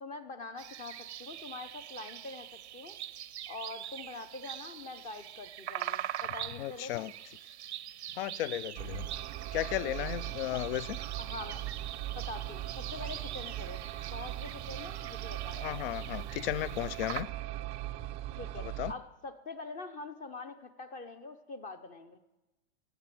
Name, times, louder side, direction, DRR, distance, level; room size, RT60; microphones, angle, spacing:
voice 1, 0.0-3.0 3.5-7.1 9.8-10.1 10.5-10.6 11.2-11.6 12.1-13.8 14.1-15.6 18.4-22.2, left 3 dB, 25° left, 0.7 m, -44 dB
sound 1, 0.6-17.2, right 12 dB, 90° right, 0.6 m, -43 dB
voice 2, 6.6-7.1 8.2-9.1 9.5-11.0 15.6-17.3 18.6-18.9, left 14 dB, 60° left, 0.4 m, -34 dB
sound 2, 8.8-18.9, right 14 dB, 20° right, 0.4 m, -40 dB
17.0 x 7.9 x 6.0 m
hypercardioid pair, 135°, 33 cm